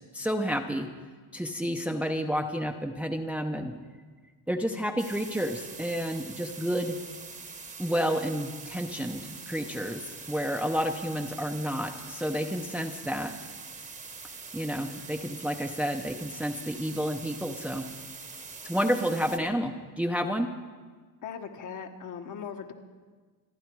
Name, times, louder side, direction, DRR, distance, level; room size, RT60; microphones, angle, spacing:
voice 1, 0.1-0.9 1.3-3.7 4.5-7.0 7.8-10.0 10.3-13.3 14.5-17.9 18.6-20.5, equal, 5° right, 4 dB, 0.7 m, -30 dB
sound 1, 5.0-19.4, right 4 dB, 20° right, 1.1 m, -44 dB
voice 2, 21.2-22.7, left 7 dB, 50° left, 5 dB, 1.5 m, -39 dB
27.5 x 11.0 x 4.7 m, 1.4 s
cardioid pair, 145°, 39 cm